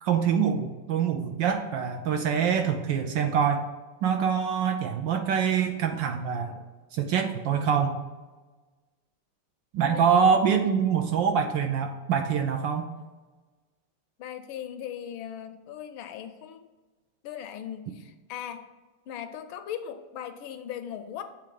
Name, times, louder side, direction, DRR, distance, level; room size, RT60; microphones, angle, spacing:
voice 1, 0.0-3.7 4.0-6.6 6.9-8.0 9.7-12.9, right 7 dB, 75° right, 6 dB, 1.1 m, -25 dB
voice 2, 14.2-16.7 17.2-18.7 19.1-21.2, left 9 dB, 75° left, 9 dB, 1.3 m, -38 dB
7.6 x 3.6 x 5.2 m, 1.3 s
omnidirectional pair, 2.3 m